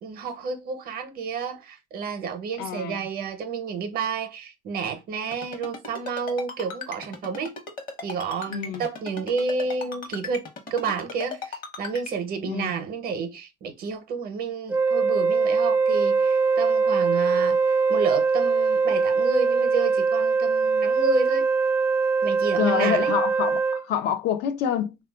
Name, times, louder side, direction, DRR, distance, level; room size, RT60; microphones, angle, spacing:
voice 1, 0.0-7.6 8.0-10.4 10.7-21.5 22.2-23.2, right 5 dB, 60° right, 0.7 m, -30 dB
voice 2, 2.6-3.1 8.5-8.8 12.4-12.8 22.6-25.0, left 9 dB, 80° left, 0.4 m, -27 dB
Ringtone, 5.3-12.1, left 4 dB, 55° left, 0.9 m, -36 dB
Wind instrument woodwind instrument, 14.7-23.9, right 4 dB, 10° right, 0.4 m, -22 dB
3.6 x 2.3 x 2.2 m
cardioid pair, 110°, 17 cm